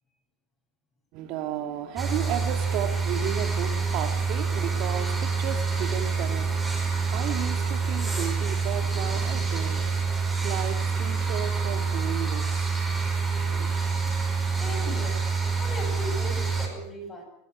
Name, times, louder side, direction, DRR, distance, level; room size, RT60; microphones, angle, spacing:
voice 1, 1.1-12.8 13.2-13.8, right 10 dB, 50° right, 6 dB, 2.0 m, -34 dB
sound 1, 2.0-16.7, right 5 dB, 5° right, 5.2 m, -27 dB
voice 2, 14.5-15.3 15.6-17.2, left 1 dB, 20° left, 2 dB, 7.8 m, -37 dB
22.0 x 13.5 x 9.5 m, 0.74 s
supercardioid pair, 145°, 0 cm